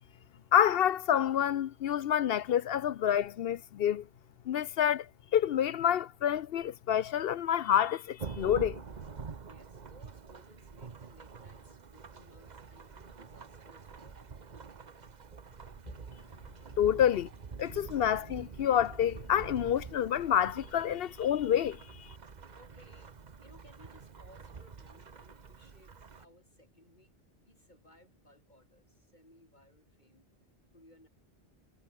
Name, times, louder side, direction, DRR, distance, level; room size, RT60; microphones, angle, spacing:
voice 1, 0.5-4.1 4.5-8.8 16.8-17.3 17.6-22.1, left 10 dB, 65° left, 0.7 m, -28 dB
Thunderstorm / Rain, 8.2-26.2, right 5 dB, 40° right, 1.1 m, -47 dB
voice 2, 9.4-14.2 15.8-16.0 22.5-27.1 27.4-30.3 30.7-31.1, left 1 dB, 40° left, 7.0 m, -60 dB
omnidirectional pair, 1.2 m